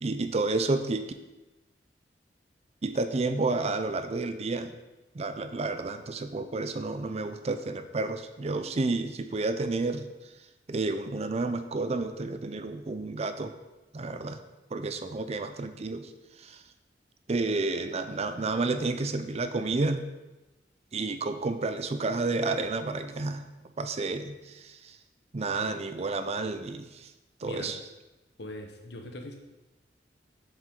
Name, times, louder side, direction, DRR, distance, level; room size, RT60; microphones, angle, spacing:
voice 1, 0.0-1.1 2.8-4.8 5.1-10.1 10.7-13.5 13.9-14.4 14.7-16.1 16.4-16.6 17.3-20.1 20.9-23.5 23.8-25.0 25.3-27.1 27.4-27.8, right 3 dB, 35° right, 9 dB, 0.5 m, -30 dB
voice 2, 27.4-27.7 28.4-29.4, left 1 dB, 70° left, 4 dB, 1.2 m, -41 dB
7.7 x 7.4 x 3.8 m, 1.1 s
head